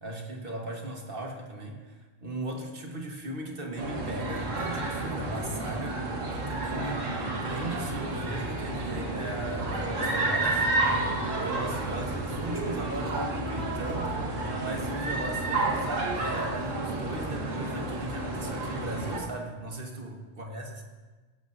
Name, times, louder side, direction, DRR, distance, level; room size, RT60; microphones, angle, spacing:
voice 1, 0.0-6.0 6.3-10.7 11.4-20.8, right 1 dB, 45° right, 1 dB, 1.7 m, -38 dB
sound 1, 3.8-19.2, right 2 dB, 85° right, 1.8 m, -31 dB
16.5 x 11.5 x 2.7 m, 1.3 s
omnidirectional pair, 1.3 m